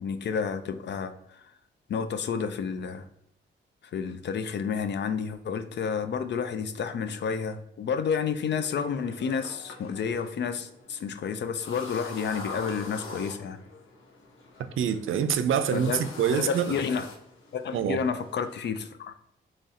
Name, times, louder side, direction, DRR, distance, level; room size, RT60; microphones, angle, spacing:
voice 1, 0.0-1.4 1.9-3.0 3.9-13.6 15.7-16.0 16.3-17.1 17.5-19.1, left 6 dB, 60° left, 0.4 m, -30 dB
sound 1, 8.5-18.6, left 3 dB, 80° left, 0.8 m, -44 dB
voice 2, 14.8-16.8 17.7-18.0, right 8 dB, 80° right, 0.4 m, -26 dB
4.1 x 3.0 x 2.4 m
cardioid pair, 90°, 21 cm